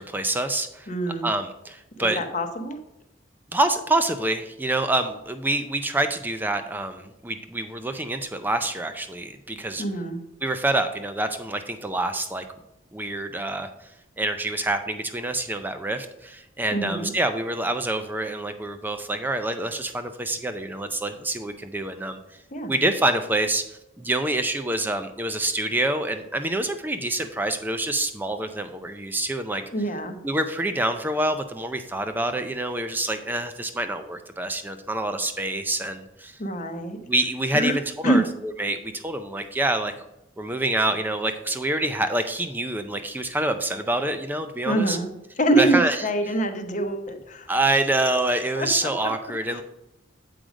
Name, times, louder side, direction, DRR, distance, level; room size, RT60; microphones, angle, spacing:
voice 1, 0.0-0.9 1.2-2.2 3.5-9.8 10.4-12.4 12.9-13.7 14.2-22.2 22.7-29.6 30.2-36.4 37.1-39.9 40.4-45.0 45.6-46.0 47.5-49.6, right 2 dB, 10° right, 8 dB, 0.4 m, -26 dB
voice 2, 0.9-1.3 2.0-2.8 9.8-10.2 16.7-17.1 22.5-22.7 29.7-30.2 36.4-37.0 37.5-37.7 38.0-38.2 44.6-45.1 45.4-47.5 48.5-48.9 49.5-49.6, right 1 dB, 40° left, 6 dB, 0.8 m, -25 dB
7.7 x 5.0 x 5.0 m, 0.91 s
head